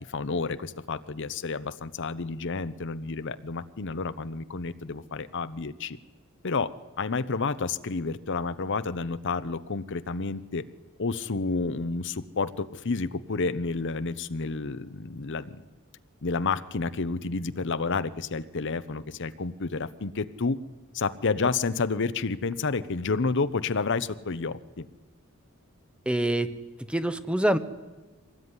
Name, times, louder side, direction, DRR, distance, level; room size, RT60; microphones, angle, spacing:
voice 1, 0.1-6.0 6.4-10.7 11.0-15.6 16.2-20.6 20.9-24.9, left 4 dB, 60° left, 13 dB, 0.8 m, -30 dB
voice 2, 26.1-26.6 26.9-27.6, right 1 dB, 5° right, 12 dB, 0.9 m, -25 dB
24.0 x 19.0 x 9.7 m, 1.2 s
head